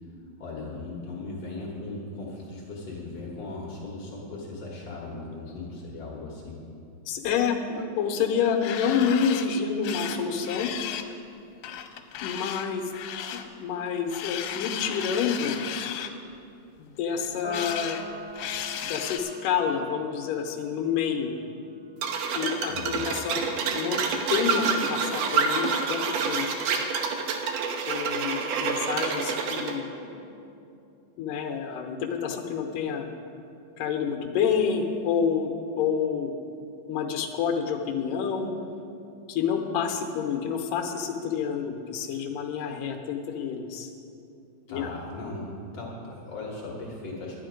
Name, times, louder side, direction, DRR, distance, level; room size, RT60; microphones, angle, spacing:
voice 1, 0.4-6.6 22.7-23.1 44.7-47.4, left 2 dB, 55° left, -4 dB, 2.1 m, -38 dB
voice 2, 7.1-10.7 12.2-12.9 13.6-15.6 16.8-18.0 18.8-21.3 22.3-24.0 24.3-26.5 27.9-30.2 31.2-33.1 33.8-36.3 36.9-38.5 39.3-43.9 44.7-44.9, left 7 dB, 75° left, 3 dB, 2.4 m, -28 dB
sound 1, 8.4-9.5 9.8-11.1 11.6-13.5 14.1-16.1 17.2-18.0 18.3-19.2, left 10 dB, 90° left, 2.5 m, -35 dB
Piano, 17.4-24.1, right 2 dB, 5° right, 0.9 m, -45 dB
sound 2, 22.0-29.7, right 5 dB, 75° right, 2.2 m, -28 dB
12.0 x 10.5 x 5.1 m, 2.7 s
omnidirectional pair, 4.2 m